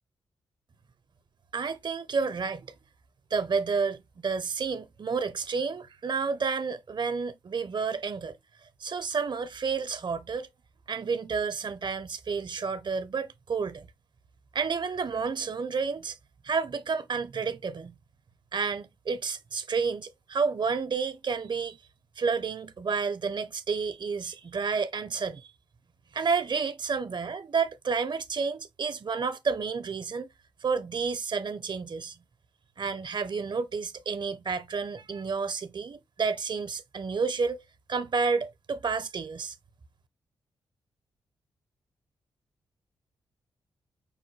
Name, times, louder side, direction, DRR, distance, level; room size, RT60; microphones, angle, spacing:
voice 1, 1.5-2.7 3.3-8.4 8.8-10.5 10.9-13.9 14.5-16.2 16.4-17.9 18.5-21.8 22.2-25.5 26.1-30.3 30.6-32.1 32.8-37.6 37.9-39.5, right 5 dB, 45° right, 0.7 m, -30 dB
5.3 x 2.2 x 3.1 m
supercardioid pair, 45°, 11 cm